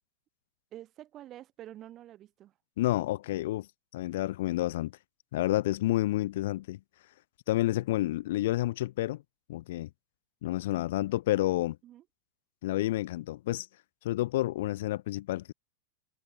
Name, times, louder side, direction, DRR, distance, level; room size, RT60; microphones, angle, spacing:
voice 1, 0.7-2.5 11.8-12.0, right 13 dB, 30° right, 4.1 m, -48 dB
voice 2, 2.8-3.7 3.9-4.9 5.3-6.8 7.5-9.2 9.5-9.9 10.4-11.8 12.6-13.7 14.0-15.5, left 16 dB, 55° left, 1.0 m, -29 dB
figure-of-eight pair, 90°, 0 cm